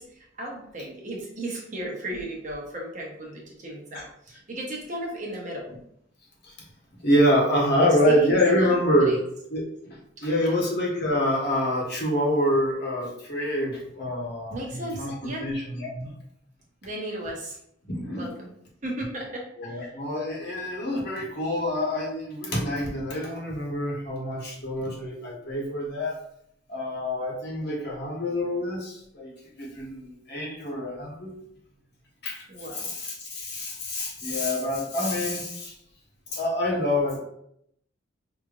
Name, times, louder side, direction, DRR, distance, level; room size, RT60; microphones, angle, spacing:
voice 1, 0.0-5.7 8.1-9.2 10.4-10.5 14.5-15.5 16.8-17.6 18.2-18.5 18.8-19.9 32.5-32.9, right 1 dB, 40° right, -2 dB, 1.0 m, -36 dB
voice 2, 7.0-9.2 9.5-9.6 10.2-16.1 17.9-18.3 19.6-26.2 26.7-29.3 29.6-31.4 32.2-32.4 32.7-35.7 36.3-37.2, left 1 dB, 55° left, -3 dB, 1.3 m, -26 dB
5.0 x 3.0 x 2.5 m, 0.73 s
head